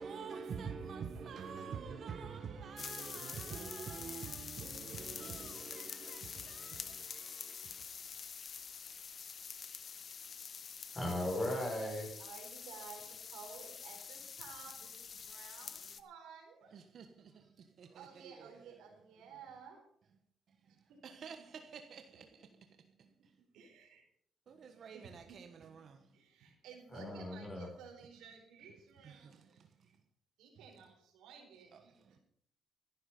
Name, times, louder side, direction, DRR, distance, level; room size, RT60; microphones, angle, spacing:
voice 1, 0.0-7.6 16.7-17.0 18.0-18.1 21.0-22.3 24.5-26.0 29.2-29.4, right 6 dB, 60° right, 1.3 m, -46 dB
sound 1, 2.8-16.0, left 6 dB, 50° left, 1.0 m, -47 dB
voice 2, 10.9-12.1 26.9-27.7, left 1 dB, 20° left, 6.3 m, -37 dB
voice 3, 12.2-16.7 17.9-19.8 20.7-21.5 22.1-22.4 23.5-24.0 24.9-25.5 26.1-29.6 30.4-32.2, right 6 dB, 90° right, 4.2 m, -55 dB
14.5 x 11.5 x 5.4 m
cardioid pair, 90°, 0 cm